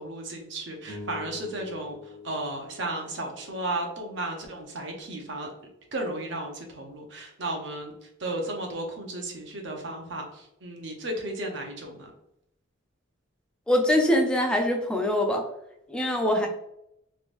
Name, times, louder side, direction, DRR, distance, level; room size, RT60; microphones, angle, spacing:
voice 1, 0.0-5.5 5.9-12.1 16.2-16.5, right 1 dB, 60° right, 2 dB, 0.7 m, -34 dB
sound 1, 0.8-5.3, left 3 dB, 80° right, 1.1 m, -46 dB
voice 2, 13.7-15.4 15.9-16.5, left 1 dB, 5° left, 2 dB, 0.4 m, -23 dB
3.4 x 3.0 x 2.5 m, 0.80 s
head